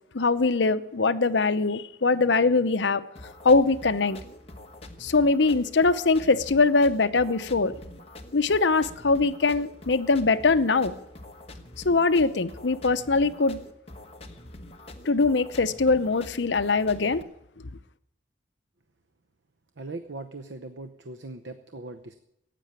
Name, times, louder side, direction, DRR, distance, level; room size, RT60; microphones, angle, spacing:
voice 1, 0.1-3.0 3.4-4.2 5.0-7.8 8.3-10.9 11.8-13.6 15.1-17.2, left 3 dB, 70° left, 12 dB, 0.8 m, -22 dB
sound 1, 3.2-17.2, left 1 dB, 35° left, 1.3 m, -45 dB
voice 2, 19.8-22.1, right 2 dB, 70° right, 9 dB, 0.8 m, -39 dB
15.5 x 9.2 x 8.9 m, 0.81 s
head